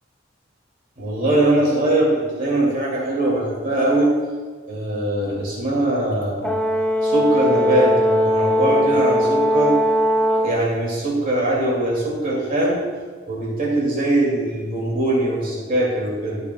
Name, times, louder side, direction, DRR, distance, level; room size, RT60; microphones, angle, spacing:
voice 1, 1.0-4.1 4.7-6.5 7.0-9.8 10.4-12.8 13.3-16.4, right 1 dB, 50° right, -5 dB, 2.3 m, -21 dB
Brass instrument, 6.4-10.6, equal, 5° left, 0.4 m, -19 dB
12.5 x 6.7 x 2.2 m, 1.5 s
head